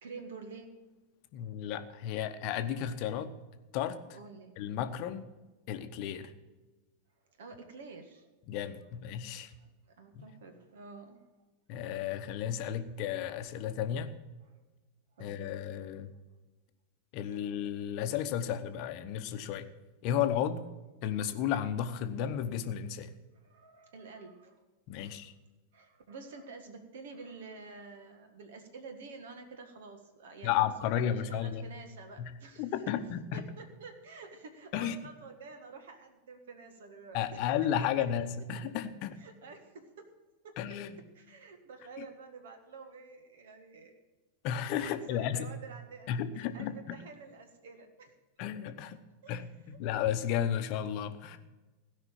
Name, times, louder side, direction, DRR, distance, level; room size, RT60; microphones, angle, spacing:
voice 1, 0.0-0.7 4.1-4.5 7.3-8.3 9.6-11.2 12.1-12.2 15.2-15.6 17.4-17.5 23.3-24.6 25.0-25.3 25.7-32.7 33.3-37.4 39.2-40.1 41.1-43.9 44.8-48.1 49.2-49.5, right 4 dB, 60° right, 7 dB, 1.6 m, -49 dB
voice 2, 1.3-3.3 3.7-4.0 4.6-5.3 5.7-6.3 8.5-9.5 10.2-10.3 11.7-14.1 15.2-16.1 17.1-19.7 20.0-20.7 21.0-23.1 24.9-25.3 30.4-31.6 32.2-32.3 32.6-33.5 34.7-35.0 37.1-39.2 40.6-40.9 44.4-45.5 46.1-47.0 48.4-49.0 49.3-51.4, left 9 dB, 45° left, 10 dB, 0.9 m, -33 dB
16.5 x 5.5 x 8.7 m, 1.2 s
figure-of-eight pair, 90°, 0 cm